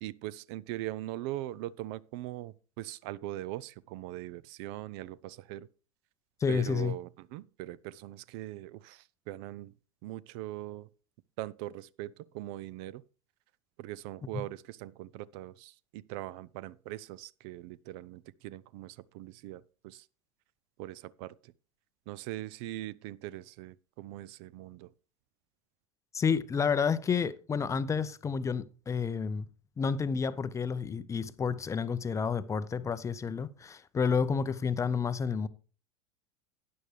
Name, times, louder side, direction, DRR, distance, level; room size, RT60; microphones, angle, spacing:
voice 1, 0.0-5.7 6.5-9.0 9.3-9.7 10.0-10.9 11.4-13.0 13.8-15.7 16.1-19.6 20.8-21.3 22.1-24.9, right 15 dB, 45° right, 0.4 m, -41 dB
voice 2, 6.4-7.0 14.3-14.5 26.1-29.5 29.8-35.5, left 6 dB, 15° left, 0.6 m, -30 dB
12.5 x 9.4 x 3.3 m
figure-of-eight pair, 85°, 18 cm